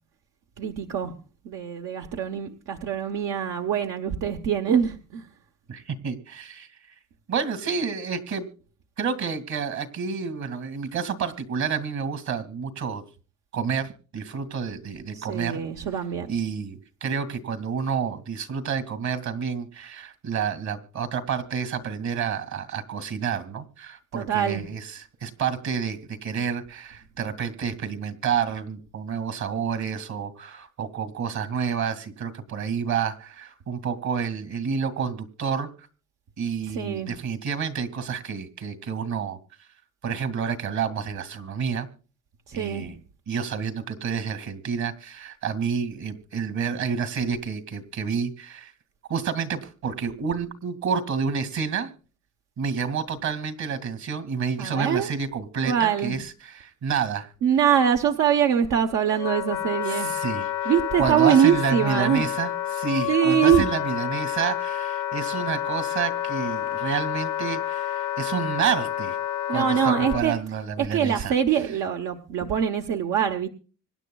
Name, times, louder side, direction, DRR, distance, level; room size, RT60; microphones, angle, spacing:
voice 1, 0.6-1.1 1.4-5.3 15.1-16.3 24.1-24.6 36.7-37.1 42.5-42.9 54.6-55.1 55.6-56.2 57.4-60.1 60.7-62.2 63.1-63.6 69.5-70.3 70.8-73.5, right 9 dB, 90° right, 1.1 m, -23 dB
voice 2, 5.7-6.7 7.3-8.5 9.0-13.0 13.5-15.6 16.3-35.7 36.4-39.4 40.0-41.9 42.5-43.0 43.3-48.7 49.1-51.9 52.6-57.3 59.9-60.7 61.0-69.2 69.5-71.3, right 6 dB, 65° right, 2.3 m, -29 dB
Wind instrument woodwind instrument, 58.6-70.2, left 11 dB, 65° left, 0.7 m, -29 dB
25.0 x 10.0 x 2.3 m
cardioid pair, 90°, 30 cm